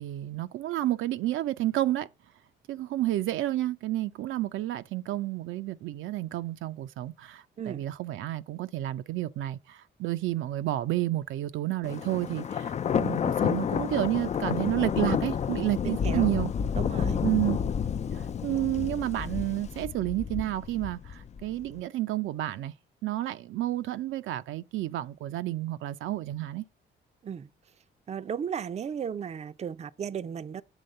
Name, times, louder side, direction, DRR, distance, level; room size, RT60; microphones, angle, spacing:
voice 1, 0.0-2.1 2.7-16.5 17.2-17.6 18.1-22.7 23.0-26.6, right 15 dB, 80° right, 0.5 m, -30 dB
Thunder, 11.8-21.7, left 7 dB, 35° left, 0.4 m, -30 dB
voice 2, 15.8-16.4 16.8-17.2 27.2-27.5 28.1-30.6, right 7 dB, 35° right, 0.5 m, -35 dB
8.1 x 3.4 x 6.6 m
cardioid pair, 90°, 20 cm